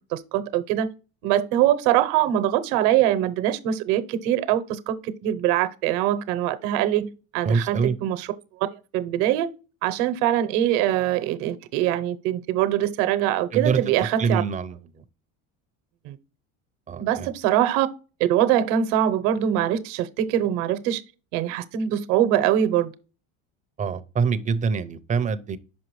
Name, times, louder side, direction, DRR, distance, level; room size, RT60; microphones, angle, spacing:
voice 1, 0.1-0.9 1.2-8.3 8.6-9.5 9.8-14.4 16.0-16.2 17.0-17.9 18.2-21.0 21.3-22.9, right 11 dB, 85° right, 0.9 m, -23 dB
voice 2, 7.4-7.9 13.5-14.8 16.9-17.3 23.8-25.6, right 5 dB, 20° right, 0.4 m, -25 dB
6.0 x 5.3 x 3.1 m
cardioid pair, 140°, 37 cm